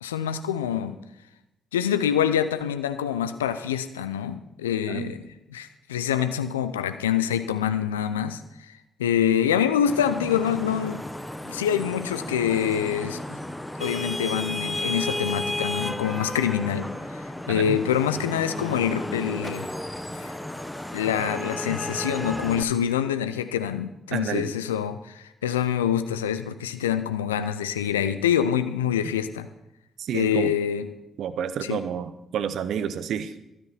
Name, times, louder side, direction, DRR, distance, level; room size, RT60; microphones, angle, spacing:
voice 1, 0.0-1.0 1.7-5.2 5.5-8.4 8.7-8.8 9.0-11.0 11.4-13.4 13.8-16.9 17.5-19.7 20.2-20.3 20.9-29.5 30.1-30.9 31.7-31.8, left 9 dB, 90° left, 11 dB, 0.6 m, -25 dB
Vehicle horn car horn honking / Traffic noise roadway noise, 9.9-22.6, left 1 dB, 10° left, 1.2 m, -33 dB
voice 2, 24.1-24.5 30.0-30.5 31.2-33.3, right 8 dB, 65° right, 12 dB, 0.8 m, -30 dB
14.0 x 12.5 x 4.3 m, 0.90 s
hypercardioid pair, 45°, 0 cm